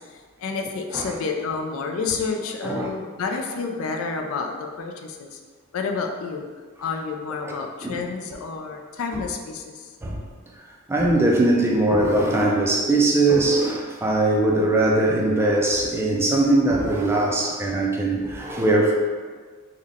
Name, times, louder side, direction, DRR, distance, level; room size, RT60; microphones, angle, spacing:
voice 1, 0.0-5.4 5.7-6.4 6.8-9.9, left 4 dB, 70° left, 3 dB, 0.4 m, -29 dB
voice 2, 10.9-18.9, right 2 dB, 10° right, -1 dB, 0.3 m, -21 dB
3.7 x 2.1 x 3.5 m, 1.5 s
head